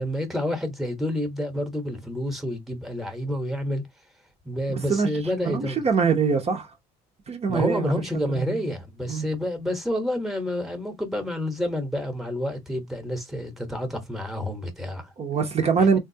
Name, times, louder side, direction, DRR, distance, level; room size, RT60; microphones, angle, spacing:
voice 1, 0.0-3.8 4.4-5.8 7.5-15.1 15.8-16.0, left 1 dB, ahead, 0.9 m, -29 dB
voice 2, 4.7-5.1 5.5-6.7 7.3-7.9 8.3-8.5 9.1-9.3 15.2-16.0, right 5 dB, 40° right, 0.7 m, -23 dB
3.6 x 2.3 x 2.7 m
cardioid pair, 110°, 17 cm